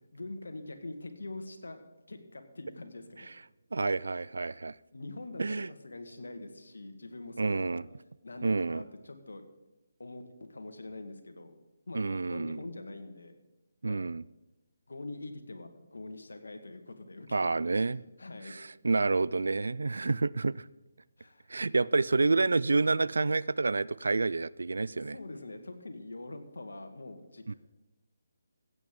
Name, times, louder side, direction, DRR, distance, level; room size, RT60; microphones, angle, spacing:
voice 1, 0.1-3.3 4.9-7.8 8.2-9.4 10.0-10.2 10.5-11.5 11.9-13.4 13.8-14.0 14.9-18.5 21.2-21.5 25.1-27.5, left 2 dB, 80° left, 1.5 m, -44 dB
voice 2, 3.7-4.8 5.4-5.7 7.4-7.8 8.4-8.8 11.9-12.6 13.8-14.2 17.3-18.0 18.5-20.7 21.5-25.2 27.5-27.6, right 3 dB, 75° right, 0.3 m, -28 dB
16.0 x 8.2 x 3.7 m
figure-of-eight pair, 155°, 0 cm